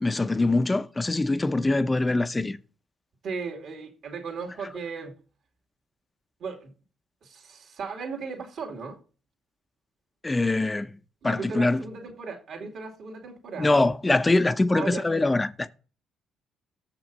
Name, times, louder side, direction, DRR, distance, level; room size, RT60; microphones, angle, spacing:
voice 1, 0.0-2.6 10.2-10.9 11.2-11.8 13.6-15.7, left 2 dB, 20° left, 0.7 m, -23 dB
voice 2, 3.2-5.1 6.4-6.7 7.2-9.0 11.2-13.9 14.7-15.0, right 5 dB, 60° right, 2.4 m, -36 dB
6.9 x 5.9 x 5.3 m
cardioid pair, 80°, 0 cm